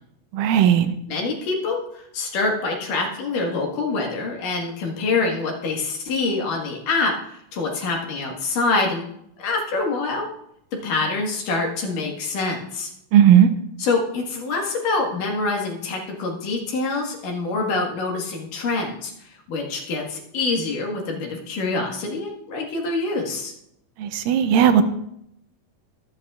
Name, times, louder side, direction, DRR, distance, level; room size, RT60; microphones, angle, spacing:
voice 1, 0.3-0.9 13.1-13.5 24.0-24.8, right 9 dB, 85° right, 9 dB, 2.4 m, -15 dB
voice 2, 1.1-9.0 9.4-10.3 10.8-12.9 13.8-19.1 19.5-23.5, left 3 dB, 75° left, 0 dB, 3.3 m, -25 dB
22.5 x 8.0 x 2.5 m, 0.75 s
omnidirectional pair, 3.9 m